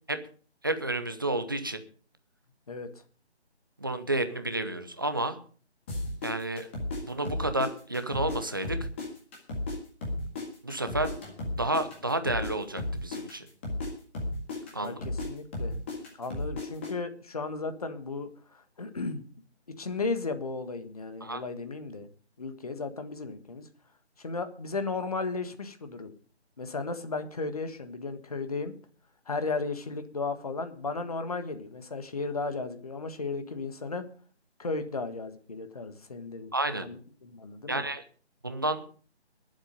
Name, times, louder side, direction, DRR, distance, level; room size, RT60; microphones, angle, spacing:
voice 1, 0.6-1.8 3.8-5.4 6.2-6.7 7.0-8.8 10.6-11.1 11.5-13.5 14.7-15.0 21.2-21.4 36.5-36.9 37.7-38.0 38.4-38.8, right 2 dB, 20° right, 9 dB, 0.8 m, -30 dB
sound 1, 5.9-8.4 8.6-12.5 12.8-16.9, left 2 dB, 10° left, 1.8 m, -34 dB
voice 2, 14.8-15.8 16.2-19.2 19.8-22.1 22.4-23.7 24.2-26.1 26.6-28.7 29.3-34.0 34.6-36.5 36.8-37.9, left 3 dB, 35° left, 9 dB, 1.5 m, -35 dB
21.0 x 7.8 x 5.1 m, 0.42 s
figure-of-eight pair, 160°, 34 cm